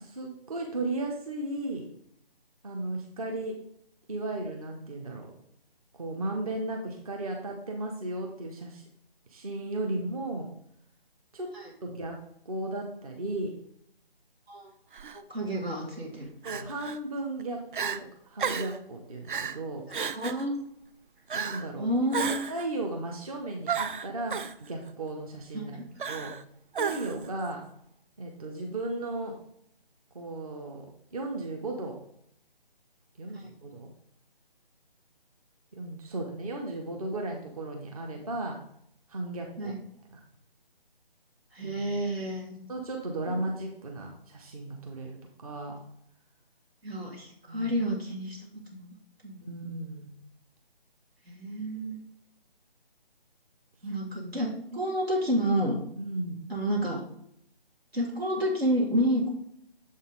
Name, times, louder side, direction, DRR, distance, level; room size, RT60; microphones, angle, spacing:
voice 1, 0.0-1.8 2.6-3.6 4.1-5.3 5.9-8.8 9.3-10.5 11.3-11.5 11.8-12.2 12.4-13.5 16.4-18.0 18.3-19.8 21.3-21.9 22.2-25.8 26.1-26.3 26.8-27.6 28.2-29.3 30.1-30.9 31.1-32.0 33.2-33.9 35.7-38.6 39.1-39.8 40.1-40.2 41.6-41.8 42.7-45.8 47.5-47.7 49.4-50.1 53.9-54.0 55.9-56.5, right 2 dB, 40° right, 1 dB, 0.9 m, -35 dB
Crying sobbing, 14.9-15.2 16.4-17.0 17.4-17.5 17.7-18.0 18.4-18.8 19.3-19.6 19.9-20.4 21.3-21.7 22.1-22.7 23.7-24.5 26.0-26.4 26.7-27.3, right 6 dB, 60° right, 0.4 m, -32 dB
voice 2, 15.1-16.3 20.1-20.5 21.8-22.3 25.7-25.8 39.6-39.8 41.5-42.7 43.3-43.4 46.8-48.9 49.2-49.4 51.3-52.0 53.8-55.8 56.5-57.0 57.9-59.3, equal, 90° right, -3 dB, 2.2 m, -29 dB
7.3 x 4.1 x 3.8 m, 0.69 s
figure-of-eight pair, 155°, 30 cm